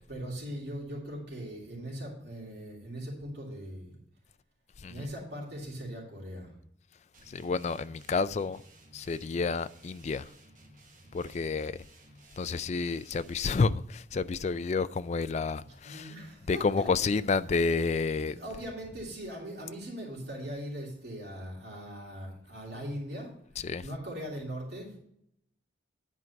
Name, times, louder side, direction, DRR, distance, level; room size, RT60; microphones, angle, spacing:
voice 1, 0.0-4.0 4.9-6.5 15.8-17.1 18.2-23.3 23.8-25.0, equal, 60° right, 2.8 m, -40 dB
sound 1, 7.1-13.7, right 1 dB, 45° right, 1.3 m, -56 dB
voice 2, 7.3-8.6 8.9-10.3 11.1-11.8 12.4-16.0 16.5-18.4 23.6-23.8, left 4 dB, 35° left, 0.3 m, -30 dB
10.0 x 4.6 x 5.8 m
head